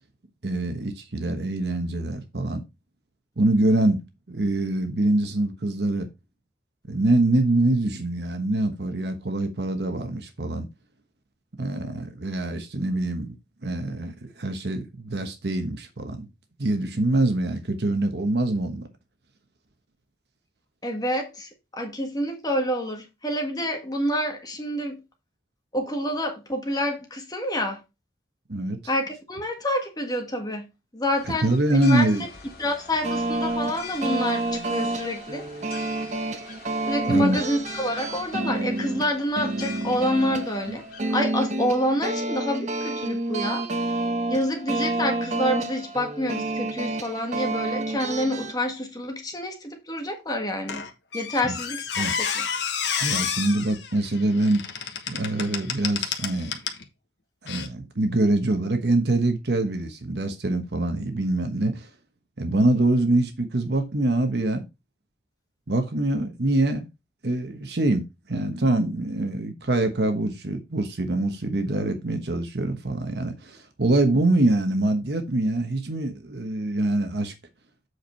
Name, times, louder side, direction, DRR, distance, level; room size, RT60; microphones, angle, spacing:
voice 1, 0.4-2.6 3.4-4.0 4.3-6.1 6.9-10.7 11.6-13.4 13.6-16.3 16.6-18.9 28.5-28.8 31.4-32.2 37.1-37.4 51.4-51.5 52.0-52.1 53.0-54.6 55.1-56.6 57.4-61.9 62.4-64.6 65.7-66.9 67.2-77.3, right 2 dB, 65° right, 1.1 m, -24 dB
voice 2, 20.8-25.0 25.7-27.8 28.9-32.1 32.6-35.5 36.9-43.6 44.3-50.9 51.1-52.5, equal, 20° left, 1.6 m, -28 dB
sound 1, 31.1-41.2, left 5 dB, 55° left, 2.1 m, -44 dB
sound 2, 33.0-48.5, right 2 dB, 40° right, 1.1 m, -29 dB
Squeak, 50.7-56.8 57.5-57.7, left 7 dB, 85° left, 1.3 m, -30 dB
8.0 x 4.7 x 4.4 m
head